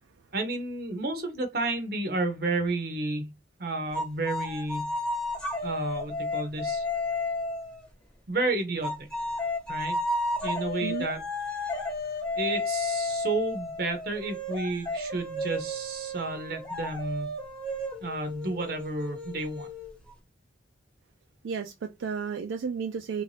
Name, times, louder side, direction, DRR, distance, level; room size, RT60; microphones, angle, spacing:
voice 1, 0.3-3.3 3.6-4.9 5.6-6.9 8.3-9.1 9.7-10.0 10.4-11.2 12.4-17.3 18.0-19.7, right 2 dB, 55° right, 0.7 m, -31 dB
sound 1, 3.9-7.9 8.8-20.1, left 2 dB, 5° left, 0.9 m, -32 dB
voice 2, 21.4-23.2, right 6 dB, 90° right, 0.4 m, -32 dB
3.1 x 2.6 x 3.2 m
head